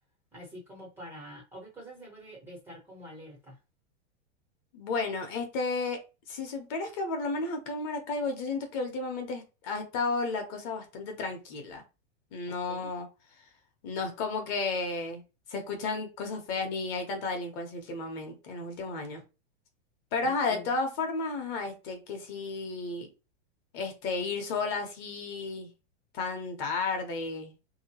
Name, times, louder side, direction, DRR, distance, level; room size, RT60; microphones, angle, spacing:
voice 1, 0.3-3.6 12.7-12.9 20.2-20.7, equal, 5° right, 0.5 m, -46 dB
voice 2, 4.7-6.0 6.3-11.8 12.3-13.1 13.8-15.2 15.5-19.2 20.1-23.1 23.7-25.7 26.1-27.5, left 3 dB, 35° left, 0.8 m, -33 dB
3.2 x 2.8 x 2.8 m
supercardioid pair, 160°, 35 cm